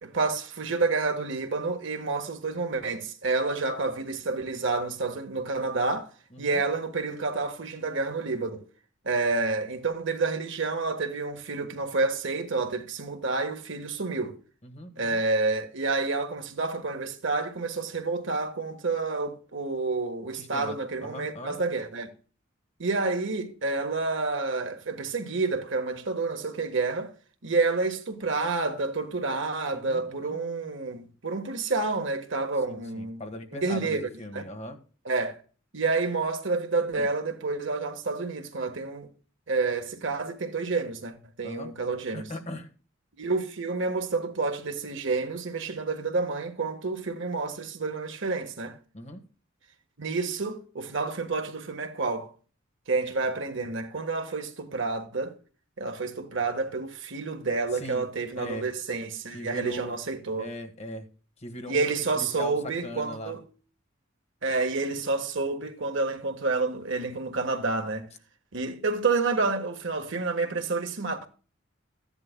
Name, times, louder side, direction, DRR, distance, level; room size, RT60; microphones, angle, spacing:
voice 1, 0.0-6.1 6.4-8.7 9.0-14.4 15.0-22.1 22.8-27.1 27.4-33.2 33.5-34.0 34.3-34.4 35.0-35.4 35.7-39.1 39.5-42.3 43.2-48.7 50.0-52.3 52.9-55.4 55.8-60.5 61.7-63.5 64.4-68.1 68.5-71.3, right 3 dB, 65° right, 1.4 m, -29 dB
voice 2, 6.3-6.6 14.6-15.2 20.4-20.8 21.0-21.6 29.7-30.4 32.7-34.8 36.9-37.1 41.4-41.7 42.1-42.7 48.9-49.2 57.7-58.1 58.4-58.7 59.3-59.9 60.4-61.0 61.4-62.6 62.8-63.3, equal, 35° left, 1.5 m, -39 dB
14.5 x 10.5 x 2.2 m
head